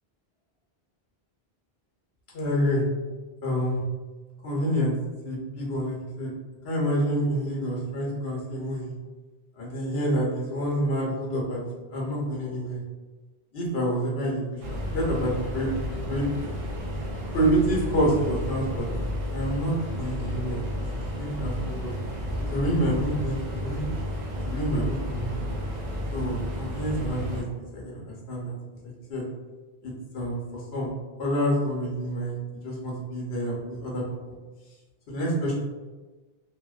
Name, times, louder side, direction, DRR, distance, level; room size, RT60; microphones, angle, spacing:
voice 1, 2.3-2.8 3.4-3.8 4.4-5.0 5.2-6.3 6.6-9.0 9.6-11.6 11.9-12.8 13.5-15.7 16.1-16.3 17.3-18.8 19.3-21.9 22.5-23.9 24.4-25.5 26.1-27.4 27.7-28.6 29.1-29.2 29.8-30.9 31.2-34.4 35.1-35.5, equal, 85° left, -3 dB, 1.0 m, -28 dB
sound 1, 14.6-27.4, equal, 45° right, 0.5 m, -32 dB
2.5 x 2.1 x 2.3 m, 1.3 s
omnidirectional pair, 1.0 m